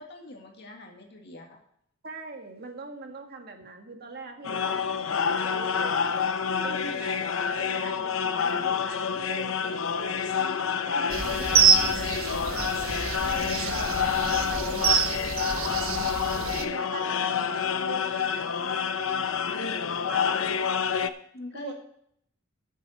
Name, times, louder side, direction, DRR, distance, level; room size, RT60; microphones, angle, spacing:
voice 1, 0.1-1.6 4.8-5.0 6.5-6.9 21.3-21.7, left 1 dB, 55° left, 1 dB, 1.9 m, -42 dB
voice 2, 2.0-6.0 6.6-7.2 7.6-10.3 10.8-12.6 13.0-13.7 14.3-18.5 19.0-20.4 21.5-21.7, right 3 dB, 50° right, 4 dB, 1.8 m, -43 dB
sound 1, 4.4-21.1, left 6 dB, 70° left, 0.7 m, -28 dB
sound 2, 11.1-16.6, right 6 dB, 90° right, 1.2 m, -26 dB
14.0 x 7.5 x 4.2 m, 0.69 s
head